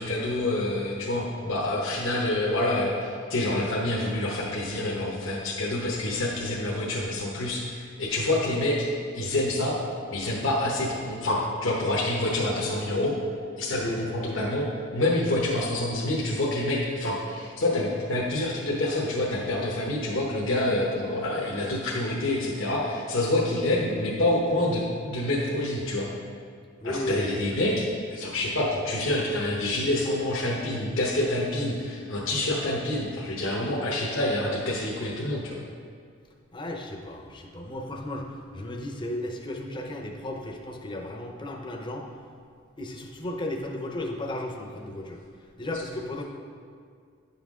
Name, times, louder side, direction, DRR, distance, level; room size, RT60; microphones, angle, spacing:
voice 1, 0.0-8.8 9.1-9.7 10.1-13.1 13.6-26.1 26.8-27.9 28.1-35.6, left 1 dB, 70° left, -5 dB, 1.0 m, -27 dB
voice 2, 13.7-14.1 26.8-27.2 36.5-42.1 42.8-45.2 45.6-46.2, left 1 dB, 25° left, 2 dB, 0.7 m, -34 dB
9.8 x 5.8 x 3.7 m, 2.2 s
head